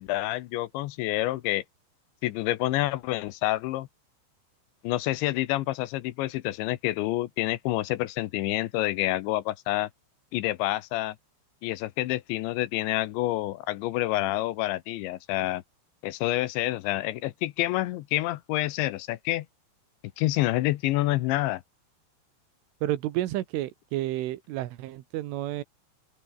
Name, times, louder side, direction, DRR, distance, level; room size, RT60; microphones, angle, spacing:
voice 1, 0.0-1.6 2.2-3.9 4.8-9.9 10.3-11.2 11.6-15.6 16.0-19.5 20.2-21.6, left 16 dB, 80° left, 3.1 m, -28 dB
voice 2, 22.8-25.6, right 15 dB, 90° right, 3.9 m, -30 dB
open air
omnidirectional pair, 5.6 m